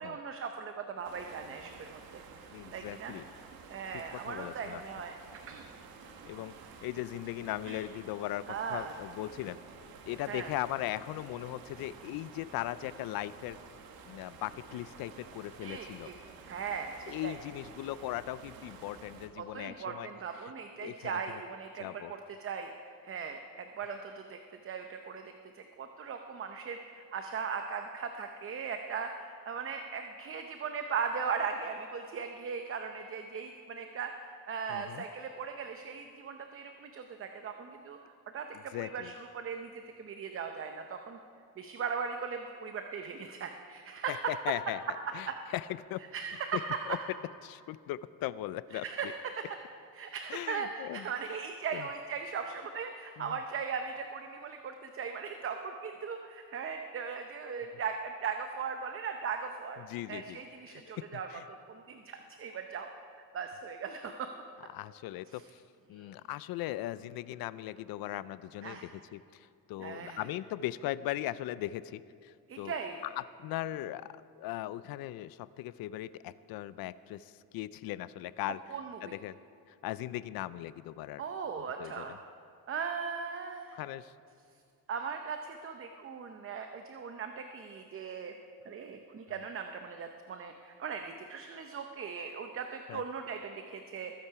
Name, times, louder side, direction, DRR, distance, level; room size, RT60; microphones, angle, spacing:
voice 1, 0.0-2.2 2.7-3.1 3.7-5.1 5.5-5.6 7.7-7.8 8.5-8.9 10.3-10.5 15.6-16.1 16.4-17.4 19.4-39.7 40.0-41.2 41.6-44.1 45.3-45.4 46.1-46.9 48.7-49.1 49.4-49.5 49.9-61.3 61.7-64.3 65.3-65.4 65.9-66.1 68.6-68.8 69.8-70.3 72.5-73.0 78.7-79.1 81.2-82.2 82.7-83.8 84.9-88.3 88.6-94.1, right 6 dB, 40° right, 6 dB, 0.7 m, -39 dB
sound 1, 1.0-19.3, right 5 dB, 85° right, 1.4 m, -51 dB
voice 2, 2.5-3.3 4.1-4.8 6.3-6.5 6.8-8.4 8.7-9.6 10.1-13.6 14.1-16.1 17.1-20.1 20.4-20.5 20.8-21.2 21.8-22.1 34.7-35.0 38.7-39.1 44.1-44.8 45.1-46.0 46.5-46.6 46.9-47.0 47.4-49.1 50.3-51.1 51.7-51.9 53.2-53.4 59.8-60.4 60.7-61.4 64.7-65.6 65.9-72.8 73.2-74.1 74.4-78.6 79.0-79.4 79.7-81.2 81.8-82.0 83.7-84.1 89.3-89.4 92.9-93.0, left 14 dB, 85° left, 17 dB, 0.5 m, -38 dB
21.0 x 8.7 x 4.7 m, 2.4 s
cardioid pair, 115°, 35 cm